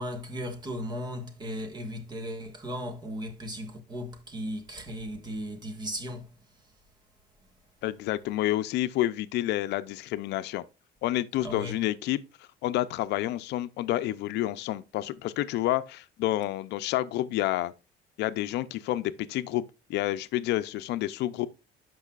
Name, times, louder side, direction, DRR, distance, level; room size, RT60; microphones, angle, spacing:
voice 1, 0.0-6.7 11.4-11.8, equal, 25° right, 1.5 m, -36 dB
voice 2, 7.8-10.6 11.0-17.7 18.2-19.6 19.9-21.5, left 14 dB, 75° left, 0.5 m, -29 dB
12.0 x 5.4 x 2.4 m
cardioid pair, 145°, 18 cm